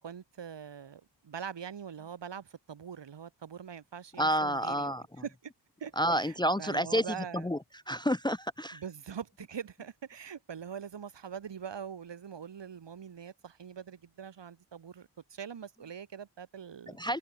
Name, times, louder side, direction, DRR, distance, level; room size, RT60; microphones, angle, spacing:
voice 1, 0.0-4.9 5.2-5.5 5.8-7.5 8.7-17.0, right 7 dB, 80° right, 5.7 m, -43 dB
voice 2, 4.2-5.0 6.0-7.1 7.3-7.6 7.9-8.8 17.0-17.2, equal, 10° left, 0.6 m, -29 dB
wide cardioid pair, 150°, 42 cm